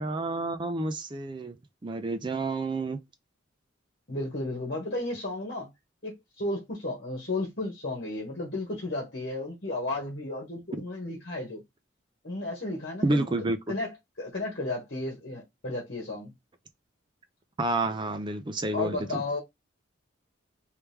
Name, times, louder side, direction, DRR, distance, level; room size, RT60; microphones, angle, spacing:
voice 1, 0.0-1.6 1.8-3.0 13.0-13.6 17.6-19.2, right 2 dB, 25° right, 0.4 m, -29 dB
voice 2, 4.1-5.7 6.0-11.6 12.2-16.3 18.7-19.4, left 2 dB, 55° left, 1.2 m, -33 dB
3.2 x 3.0 x 3.4 m
head